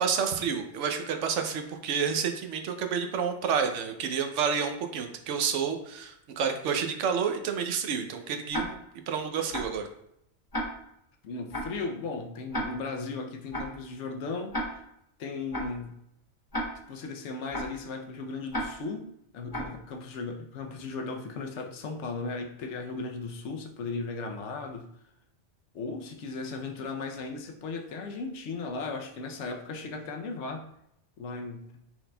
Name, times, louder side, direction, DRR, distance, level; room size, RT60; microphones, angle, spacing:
voice 1, 0.0-8.8 9.1-9.9, right 6 dB, 75° right, 6 dB, 0.9 m, -29 dB
Tick-tock, 8.5-8.6 9.5-9.7 10.5-10.6 11.5-11.7 12.5-12.6 13.5-13.7 14.5-14.6 15.5-15.7 16.5-16.6 17.5-17.7 18.5-18.6 19.5-19.7, equal, 25° left, 0.6 m, -31 dB
voice 2, 11.2-14.6 15.2-16.0 16.9-19.1 19.3-24.9 25.7-30.7 31.2-31.8, left 3 dB, 70° left, 3 dB, 0.9 m, -36 dB
6.0 x 3.7 x 2.2 m, 0.77 s
omnidirectional pair, 1.3 m